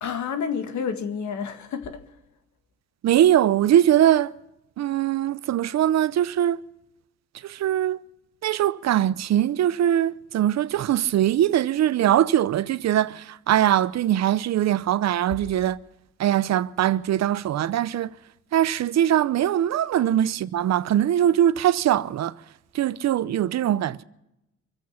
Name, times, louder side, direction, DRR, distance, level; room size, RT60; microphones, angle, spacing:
voice 1, 0.0-2.0 20.0-20.1, left 6 dB, 70° left, 1.9 m, -30 dB
voice 2, 3.0-4.3 4.8-6.6 7.4-8.0 8.4-15.8 16.2-18.1 18.5-22.3 22.7-24.0, right 11 dB, 60° right, 0.7 m, -21 dB
25.0 x 8.5 x 5.8 m
cardioid pair, 90°, 30 cm